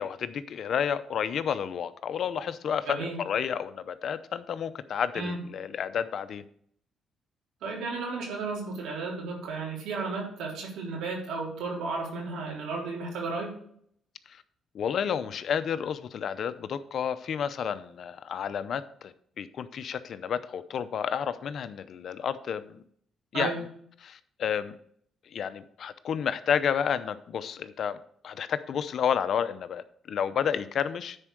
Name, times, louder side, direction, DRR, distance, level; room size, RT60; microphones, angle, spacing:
voice 1, 0.0-6.4 14.7-22.8 23.3-23.5 24.0-24.8 25.3-28.0 28.2-31.2, left 8 dB, 60° left, 13 dB, 0.6 m, -31 dB
voice 2, 2.9-3.2 5.1-5.4 7.6-13.5 23.3-23.6, right 3 dB, 85° right, -3 dB, 3.6 m, -33 dB
9.9 x 4.5 x 6.2 m, 0.64 s
cardioid pair, 90°, 0 cm